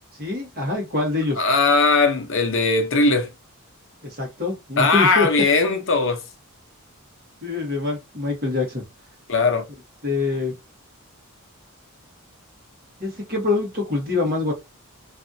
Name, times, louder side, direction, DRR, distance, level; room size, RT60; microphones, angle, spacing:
voice 1, 0.2-1.4 4.0-5.3 7.4-8.8 10.0-10.5 13.0-14.5, left 3 dB, 40° right, 1.5 m, -25 dB
voice 2, 1.4-3.3 4.8-6.2 9.3-9.6, left 3 dB, 60° left, 0.8 m, -19 dB
3.2 x 2.5 x 2.7 m
head